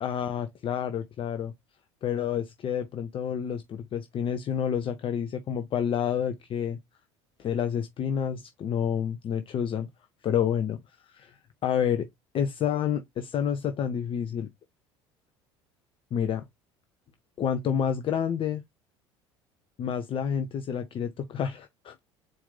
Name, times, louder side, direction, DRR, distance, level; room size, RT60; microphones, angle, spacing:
voice 1, 0.0-1.5 2.0-6.8 7.4-9.9 10.2-10.8 11.1-12.1 12.3-14.5 16.1-16.4 17.4-18.6 19.8-21.9, left 8 dB, 35° left, 0.5 m, -29 dB
4.3 x 2.5 x 3.7 m
figure-of-eight pair, 65°, 15 cm